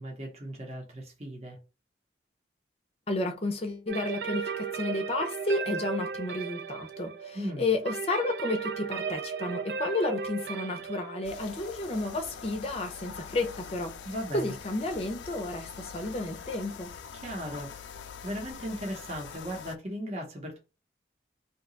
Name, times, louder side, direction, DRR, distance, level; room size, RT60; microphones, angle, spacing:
voice 1, 0.0-1.6 7.3-7.7 14.1-14.5 17.1-20.6, equal, 35° right, 0.8 m, -37 dB
voice 2, 3.1-14.0 14.3-16.9, left 2 dB, 35° left, 0.6 m, -32 dB
sound 1, 3.9-13.6, right 6 dB, 70° right, 0.3 m, -36 dB
sound 2, 11.2-19.8, left 7 dB, 85° left, 0.4 m, -44 dB
2.8 x 2.3 x 3.9 m
head